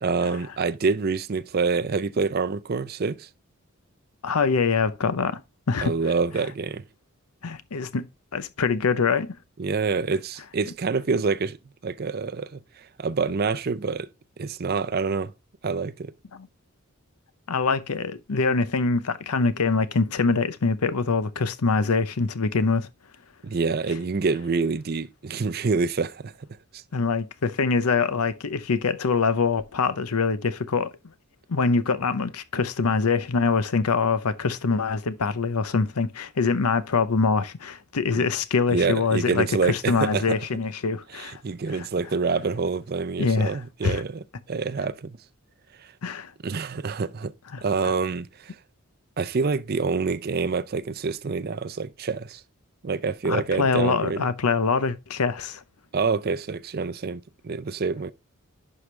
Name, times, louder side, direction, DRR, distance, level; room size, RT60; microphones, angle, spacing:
voice 1, 0.0-3.3 5.8-6.8 9.6-11.6 11.8-14.1 14.4-15.3 15.6-16.1 23.4-26.3 26.7-26.8 38.1-38.2 38.7-40.4 41.1-45.2 46.4-47.3 47.6-48.6 49.2-52.4 52.8-54.3 55.9-58.1, right 4 dB, 45° right, 0.5 m, -27 dB
voice 2, 4.2-5.4 5.7-5.9 7.4-8.1 8.3-9.4 16.3-16.5 17.5-22.9 26.9-30.9 31.5-41.4 41.7-41.9 43.2-44.0 46.0-46.3 47.5-47.6 53.2-55.6, left 4 dB, 90° left, 0.7 m, -24 dB
11.0 x 5.0 x 3.2 m
head